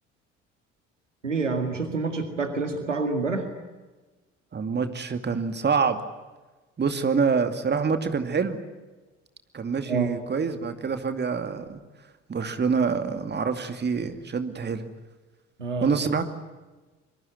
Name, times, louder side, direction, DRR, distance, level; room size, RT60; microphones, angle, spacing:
voice 1, 1.2-3.5 9.9-10.1 15.6-16.0, right 3 dB, 85° right, 7 dB, 2.1 m, -27 dB
voice 2, 4.5-6.0 6.8-8.6 9.5-11.8 12.3-14.9 15.8-16.3, right 5 dB, 30° right, 8 dB, 2.4 m, -26 dB
25.5 x 22.5 x 9.5 m, 1.2 s
figure-of-eight pair, 50°, 36 cm